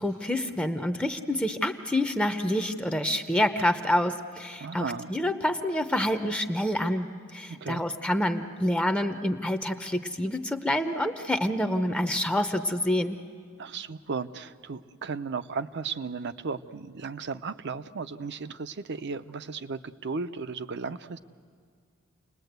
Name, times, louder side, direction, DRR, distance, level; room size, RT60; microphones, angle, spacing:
voice 1, 0.0-13.2, left 1 dB, 5° left, 7 dB, 0.7 m, -27 dB
voice 2, 4.6-5.1 7.5-7.8 13.6-21.2, right 5 dB, 55° right, 12 dB, 0.6 m, -35 dB
29.5 x 20.0 x 8.0 m, 2.1 s
head